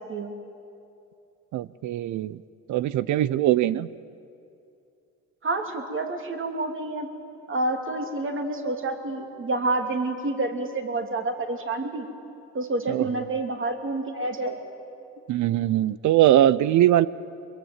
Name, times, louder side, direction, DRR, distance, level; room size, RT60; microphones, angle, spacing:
voice 1, 1.5-2.4 2.7-3.9 12.9-13.1 15.3-17.1, right 13 dB, 75° right, 17 dB, 0.6 m, -21 dB
voice 2, 5.4-7.1 7.5-12.1 12.5-14.6, right 2 dB, 40° right, 4 dB, 3.0 m, -28 dB
23.5 x 22.5 x 8.9 m, 2.6 s
cardioid pair, 90°, 30 cm